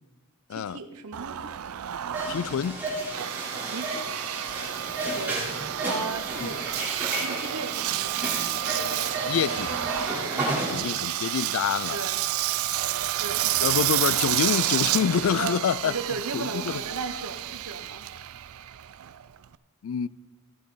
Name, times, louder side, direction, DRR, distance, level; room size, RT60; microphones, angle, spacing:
voice 1, 0.5-1.5 3.6-4.0 5.0-6.7 7.2-8.5 10.3-11.0 11.9-12.2 13.2-14.0 15.3-18.1, right 4 dB, 85° right, 1.0 m, -37 dB
Engine, 1.1-19.6, right 13 dB, 70° right, 0.4 m, -30 dB
sound 1, 2.1-10.7, right 1 dB, 10° right, 3.4 m, -32 dB
voice 2, 2.3-2.8 6.4-6.5 9.3-9.7 10.7-12.1 13.6-16.0 16.3-16.8 19.8-20.1, left 8 dB, 65° left, 0.3 m, -27 dB
16.0 x 8.6 x 3.9 m
head